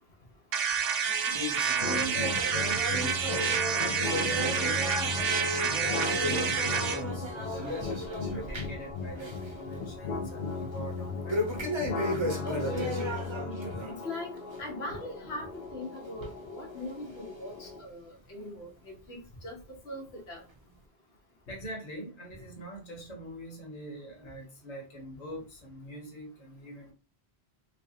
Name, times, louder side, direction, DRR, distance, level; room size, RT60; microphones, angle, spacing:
sound 1, 0.5-7.0, right 7 dB, 70° right, 0.8 m, -29 dB
sound 2, 1.3-8.9 9.1-9.5 9.9-10.0 11.3-14.0 14.4-14.6 15.2-15.3 16.2-16.3 17.1-17.2, equal, 30° right, 0.7 m, -35 dB
sound 3, 1.8-17.8, left 4 dB, 55° left, 0.6 m, -37 dB
voice 1, 2.0-5.6 5.9-7.9 8.3-11.5 21.5-26.9, right 1 dB, 40° left, 1.2 m, -44 dB
voice 2, 12.4-13.2 13.9-20.4, left 1 dB, 80° left, 1.4 m, -40 dB
3.4 x 3.2 x 2.8 m
omnidirectional pair, 1.1 m